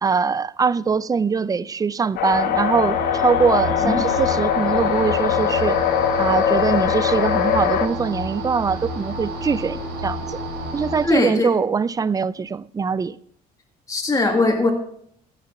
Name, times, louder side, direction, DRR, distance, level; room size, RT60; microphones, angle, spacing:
voice 1, 0.0-5.8 6.2-10.4 10.7-13.2, right 5 dB, 20° right, 0.4 m, -22 dB
sound 1, 2.2-7.9, left 9 dB, 80° left, 1.2 m, -21 dB
sound 2, 2.3-11.1, equal, 80° right, 3.6 m, -30 dB
voice 2, 11.0-11.5 13.9-14.7, left 3 dB, 20° left, 2.1 m, -20 dB
14.5 x 7.5 x 5.9 m
cardioid pair, 110°, 17 cm